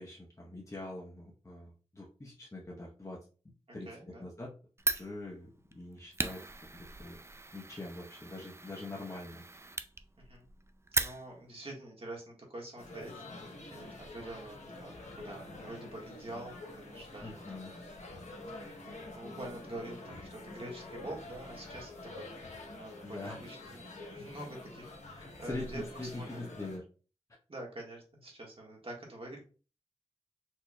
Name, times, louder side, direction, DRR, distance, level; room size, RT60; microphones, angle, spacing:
voice 1, 0.0-3.2 3.7-3.9 4.2-4.5 4.9-6.4 6.7-7.2 7.5-9.4 17.2-17.7 23.0-23.4 25.2-26.8, left 2 dB, 25° left, -3 dB, 0.9 m, -43 dB
voice 2, 3.7-4.2 10.2-10.4 11.0-17.6 19.1-21.9 22.2-25.8 26.1-26.6 27.5-29.4, right 1 dB, 50° right, -2 dB, 1.6 m, -46 dB
Fire, 4.8-11.6, right 2 dB, 20° right, 0.4 m, -38 dB
sound 1, 12.8-26.8, left 2 dB, 75° left, 1.0 m, -47 dB
4.4 x 2.9 x 2.3 m, 0.37 s
cardioid pair, 50°, 12 cm